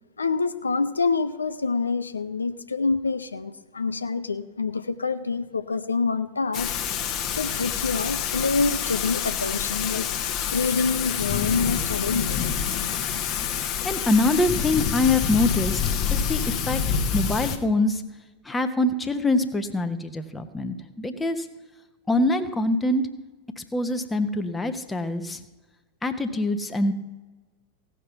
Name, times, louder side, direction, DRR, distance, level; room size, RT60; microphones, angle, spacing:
voice 1, 0.2-6.7 7.4-12.8, left 4 dB, 75° left, 11 dB, 0.5 m, -27 dB
Thunder / Rain, 6.5-17.6, left 8 dB, 35° left, 1.1 m, -27 dB
voice 2, 13.8-15.8 16.1-16.8 17.1-18.0 18.4-21.5 22.1-23.0 23.6-25.4 26.0-26.9, left 2 dB, 10° left, 7 dB, 1.0 m, -24 dB
16.5 x 6.1 x 6.8 m, 1.2 s
figure-of-eight pair, 90°, 0 cm